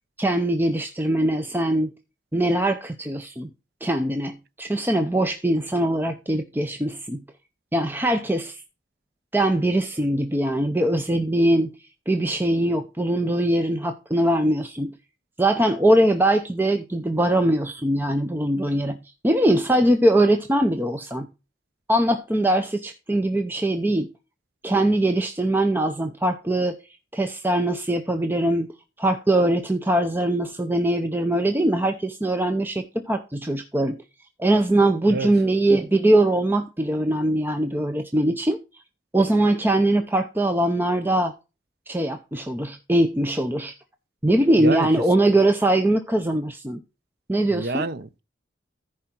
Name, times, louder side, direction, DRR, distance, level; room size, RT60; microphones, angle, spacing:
voice 1, 0.2-1.9 2.3-3.5 3.8-7.2 7.7-8.6 9.3-11.7 12.1-14.9 15.4-19.0 19.2-21.3 21.9-24.1 24.6-26.8 27.1-28.7 29.0-34.0 34.4-38.6 39.1-41.3 41.9-43.7 44.2-46.8 47.3-47.8, right 1 dB, 10° right, 0.6 m, -22 dB
voice 2, 47.5-48.2, right 2 dB, 55° right, 0.6 m, -27 dB
14.0 x 4.9 x 4.4 m
head